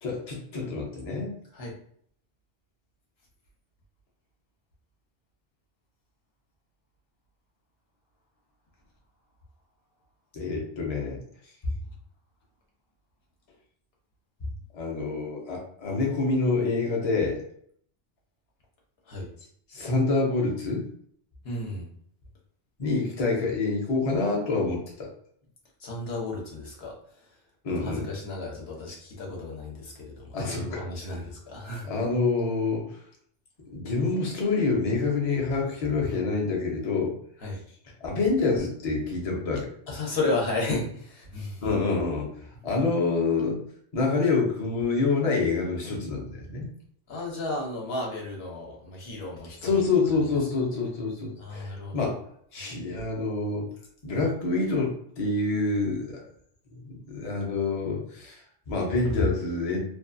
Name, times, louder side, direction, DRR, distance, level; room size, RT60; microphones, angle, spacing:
voice 1, 0.0-1.4 10.3-11.2 14.7-17.4 19.7-20.8 22.8-25.1 27.6-28.1 30.3-30.8 31.8-33.0 33.7-37.1 38.0-39.7 41.6-42.3 42.6-43.6 43.9-46.7 49.6-52.2 52.5-53.7 54.0-56.2 56.7-59.8, left 3 dB, 40° left, -1 dB, 0.6 m, -27 dB
voice 2, 21.4-21.9 25.8-27.3 27.8-31.9 37.4-37.6 39.9-41.6 47.1-49.8 51.4-52.1 52.6-52.7, left 2 dB, 60° left, -2 dB, 1.0 m, -33 dB
2.5 x 2.3 x 2.5 m, 0.64 s
omnidirectional pair, 1.2 m